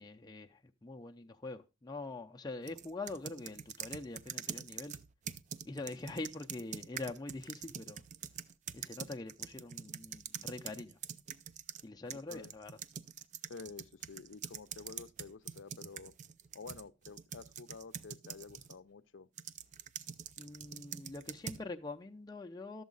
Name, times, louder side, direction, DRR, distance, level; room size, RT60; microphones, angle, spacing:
voice 1, 0.0-5.0 5.7-8.0 8.7-11.0 11.8-12.7 20.4-22.8, left 2 dB, 20° left, 0.5 m, -44 dB
sound 1, 2.7-11.8 12.1-18.8 19.4-21.7, right 8 dB, 40° right, 0.4 m, -45 dB
voice 2, 13.5-16.1 16.5-19.3, left 4 dB, 80° left, 0.6 m, -50 dB
11.5 x 7.2 x 3.9 m
head